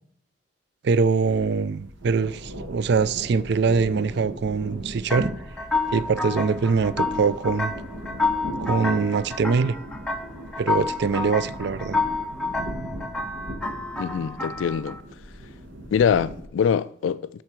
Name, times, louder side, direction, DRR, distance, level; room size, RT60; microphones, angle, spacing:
voice 1, 0.8-5.3 5.9-7.7 8.6-9.8 10.6-12.0, right 5 dB, 60° right, 0.4 m, -23 dB
sound 1, 1.2-16.5, right 1 dB, 85° right, 1.4 m, -38 dB
sound 2, 5.1-15.0, left 3 dB, 5° left, 0.7 m, -29 dB
voice 2, 14.0-15.0 15.9-17.4, left 7 dB, 90° left, 0.3 m, -24 dB
12.5 x 4.5 x 4.6 m
head